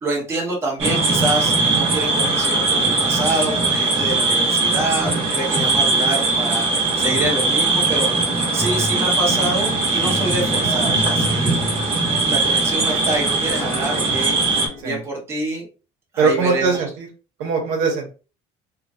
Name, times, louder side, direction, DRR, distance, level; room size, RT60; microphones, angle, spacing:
voice 1, 0.0-6.7 7.0-8.1 8.5-11.6 12.3-15.7 16.1-16.9, right 2 dB, 20° right, -3 dB, 1.0 m, -26 dB
sound 1, 0.8-14.7, right 3 dB, 40° right, 1.1 m, -20 dB
sound 2, 8.6-14.8, left 1 dB, 20° left, 0.7 m, -32 dB
voice 2, 16.2-17.1 17.4-18.1, right 5 dB, 80° right, 1 dB, 1.0 m, -20 dB
3.0 x 2.3 x 2.7 m, 0.34 s
cardioid pair, 170°, 14 cm